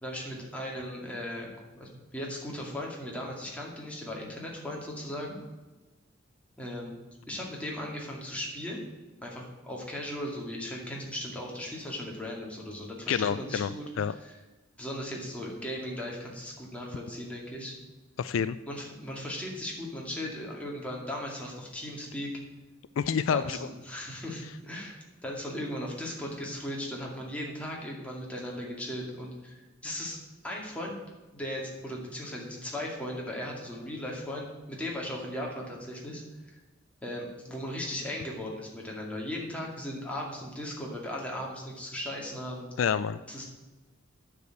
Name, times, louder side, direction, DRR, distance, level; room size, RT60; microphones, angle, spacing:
voice 1, 0.0-1.5 1.7-5.4 6.6-6.9 7.3-8.8 9.2-13.9 14.2-14.3 14.8-17.7 18.7-22.3 23.3-23.6 23.8-30.2 30.4-31.0 31.3-36.2 37.0-42.7 43.3-43.4, left 1 dB, 5° left, -2 dB, 2.2 m, -37 dB
voice 2, 13.1-13.7 14.0-14.1 18.2-18.6 23.0-23.6 42.8-43.2, left 7 dB, 70° left, 14 dB, 0.3 m, -27 dB
9.7 x 4.9 x 8.0 m, 1.2 s
head